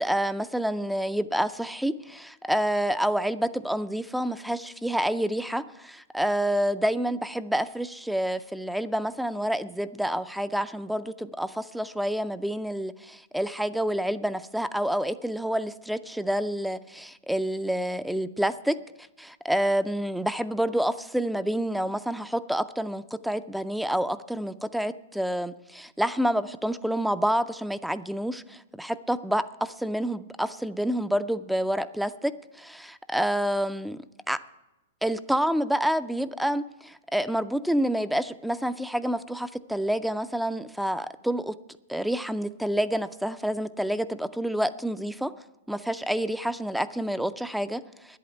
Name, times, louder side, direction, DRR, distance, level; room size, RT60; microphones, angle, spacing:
voice 1, 0.0-18.8 19.2-34.0 34.3-34.4 35.0-41.6 41.9-45.3 45.7-48.2, equal, ahead, 13 dB, 0.4 m, -28 dB
10.5 x 8.4 x 9.0 m, 0.99 s
hypercardioid pair, 145°, 0 cm